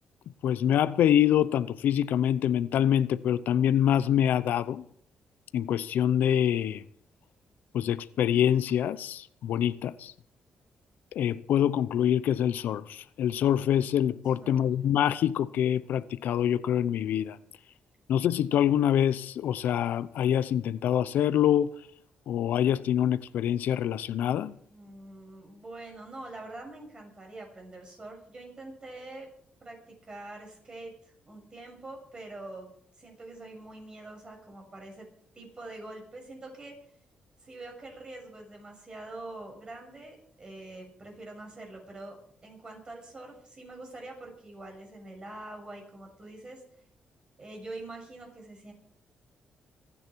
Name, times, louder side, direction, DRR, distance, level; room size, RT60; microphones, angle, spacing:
voice 1, 0.4-4.8 5.5-6.8 7.7-10.1 11.1-17.4 18.1-21.7 22.3-24.6, left 10 dB, 80° left, 0.7 m, -25 dB
voice 2, 24.7-29.3 29.6-35.1 35.3-36.8 37.4-46.6 47.4-48.7, right 2 dB, 30° right, 6.9 m, -45 dB
26.0 x 10.0 x 4.7 m
cardioid pair, 110°, 3 cm